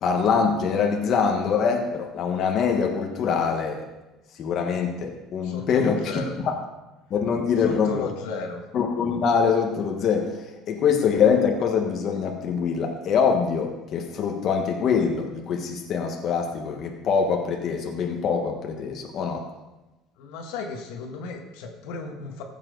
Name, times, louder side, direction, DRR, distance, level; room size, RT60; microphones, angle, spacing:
voice 1, 0.0-3.9 4.4-6.5 7.1-8.1 8.7-19.4, left 6 dB, 45° left, 2 dB, 1.4 m, -24 dB
voice 2, 5.4-6.3 7.6-8.6 20.2-22.4, left 4 dB, 80° left, 3 dB, 1.5 m, -34 dB
15.0 x 7.3 x 4.0 m, 1.1 s
cardioid pair, 130°, 0 cm